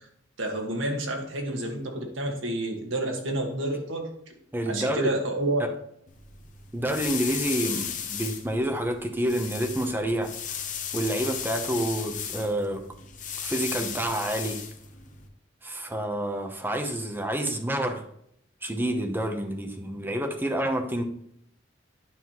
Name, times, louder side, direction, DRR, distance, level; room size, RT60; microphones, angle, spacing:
voice 1, 0.4-4.3 4.7-5.6, right 1 dB, 70° right, 2 dB, 1.6 m, -29 dB
voice 2, 4.5-5.2 5.6-5.7 6.7-10.3 10.9-12.8 13.4-14.6 15.6-18.0 18.6-21.0, right 1 dB, 10° right, 5 dB, 0.8 m, -28 dB
sound 1, 6.1-15.3, left 7 dB, 40° left, 1.0 m, -36 dB
9.5 x 5.6 x 3.0 m, 0.71 s
head